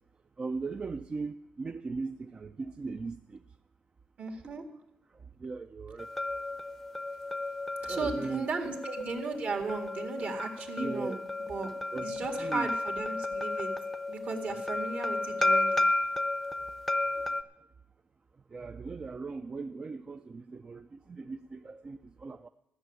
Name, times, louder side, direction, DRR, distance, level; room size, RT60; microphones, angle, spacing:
voice 1, 0.4-3.4 5.4-6.1 7.9-8.5 10.8-11.3 11.9-12.1 12.4-12.7 18.5-22.5, right 4 dB, 30° right, 9 dB, 0.4 m, -38 dB
voice 2, 4.2-4.7 7.8-11.7 12.0-13.7 14.1-15.9, right 4 dB, 55° right, 3 dB, 1.9 m, -36 dB
sound 1, 6.0-17.4, left 2 dB, 5° left, 0.6 m, -33 dB
13.5 x 6.3 x 9.1 m, 0.87 s
cardioid pair, 105°, 3 cm